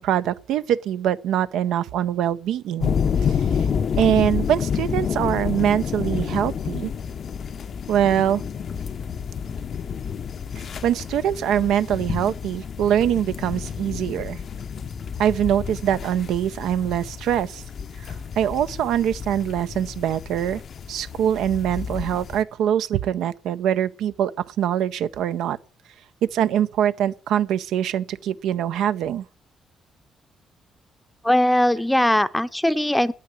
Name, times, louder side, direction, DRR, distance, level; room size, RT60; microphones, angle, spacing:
voice 1, 0.0-3.0 3.2-3.4 4.0-6.9 7.9-8.4 10.8-14.4 15.2-17.6 18.1-20.6 20.9-25.6 26.3-29.3, right 10 dB, 85° right, 0.5 m, -23 dB
sound 1, 2.8-22.4, left 7 dB, 55° left, 0.6 m, -29 dB
voice 2, 31.2-33.1, left 1 dB, 5° left, 0.6 m, -20 dB
8.9 x 8.5 x 8.1 m
cardioid pair, 90°, 0 cm